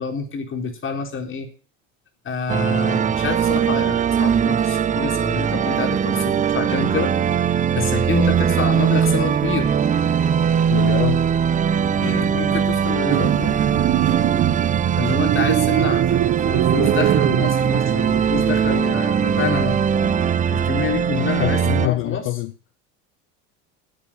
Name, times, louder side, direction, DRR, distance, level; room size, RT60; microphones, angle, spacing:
voice 1, 0.0-1.5 2.2-9.8 12.0-13.6 15.0-16.2 16.5-19.8 20.5-22.3, left 5 dB, 35° left, 3.8 m, -27 dB
sound 1, 2.5-21.9, right 7 dB, 20° right, 0.5 m, -20 dB
voice 2, 10.7-11.3 21.1-22.5, left 18 dB, 70° left, 0.8 m, -25 dB
sound 2, 13.1-19.7, right 12 dB, 40° right, 1.0 m, -23 dB
9.0 x 8.9 x 8.6 m
supercardioid pair, 105°, 37 cm